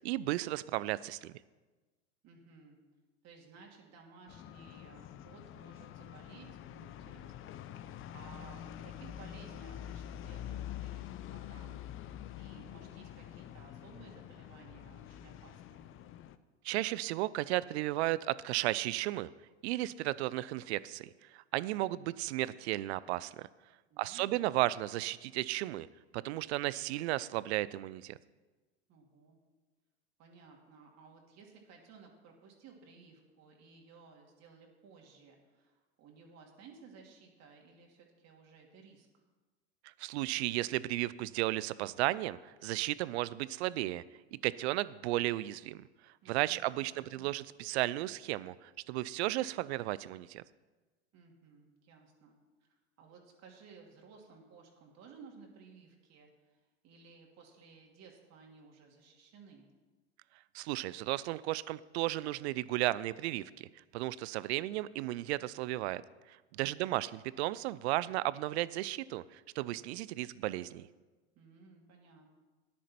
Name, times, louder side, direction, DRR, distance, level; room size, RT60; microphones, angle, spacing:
voice 1, 0.0-1.3 16.6-19.3 19.6-23.5 24.0-25.9 26.1-28.2 40.0-44.0 44.3-45.8 46.3-50.4 60.5-63.7 63.9-66.0 66.5-70.9, right 17 dB, 65° right, 19 dB, 0.5 m, -34 dB
voice 2, 2.2-2.8 3.2-11.8 12.4-15.9 23.9-24.5 28.9-29.4 30.2-39.1 46.2-47.3 51.1-52.4 52.6-59.7 71.4-72.3, right 5 dB, 50° right, 0 dB, 2.6 m, -57 dB
sound 1, 4.3-16.4, left 11 dB, 35° left, 0.6 m, -46 dB
12.0 x 10.0 x 4.3 m, 1.2 s
hypercardioid pair, 85°, 35 cm